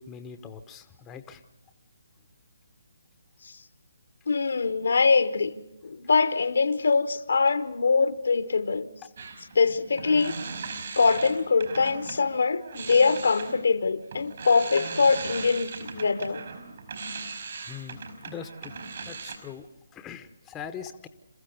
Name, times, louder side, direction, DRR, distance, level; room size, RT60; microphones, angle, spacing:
voice 1, 0.0-1.4 17.6-18.7 19.0-21.1, left 8 dB, 15° left, 0.9 m, -42 dB
voice 2, 4.3-8.9 9.5-10.3 11.0-16.4, left 4 dB, 65° left, 1.1 m, -23 dB
sound 1, 9.2-12.2 12.6-19.4, right 4 dB, 55° right, 4.7 m, -38 dB
27.0 x 15.0 x 6.8 m
figure-of-eight pair, 145°, 0 cm